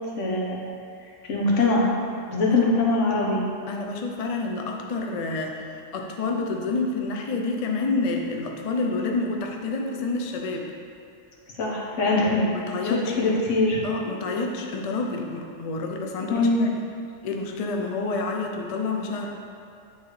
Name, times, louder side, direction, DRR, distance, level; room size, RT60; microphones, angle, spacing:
voice 1, 0.2-0.6 1.3-1.9 2.3-3.4 11.6-12.4 12.8-13.8 16.3-16.6, left 2 dB, 75° left, -3 dB, 1.3 m, -22 dB
voice 2, 3.7-10.7 12.2-13.4 13.8-16.7 17.2-19.3, left 3 dB, 60° left, 2 dB, 0.4 m, -29 dB
8.2 x 3.7 x 3.1 m, 2.4 s
omnidirectional pair, 1.3 m